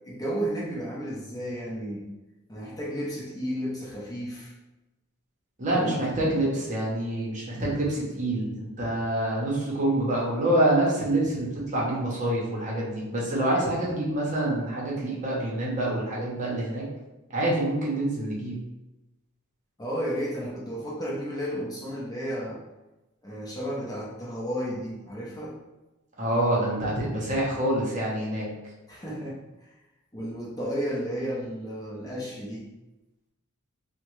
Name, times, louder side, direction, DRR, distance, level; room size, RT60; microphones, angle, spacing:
voice 1, 0.0-2.0 2.5-4.5 5.7-6.4 19.8-22.6 23.2-25.6 28.9-29.4 30.1-32.7, equal, 15° left, -6 dB, 0.6 m, -33 dB
voice 2, 5.6-16.8 17.3-18.6 26.2-28.5, right 1 dB, 35° right, -4 dB, 0.8 m, -26 dB
3.5 x 2.2 x 3.1 m, 1.0 s
head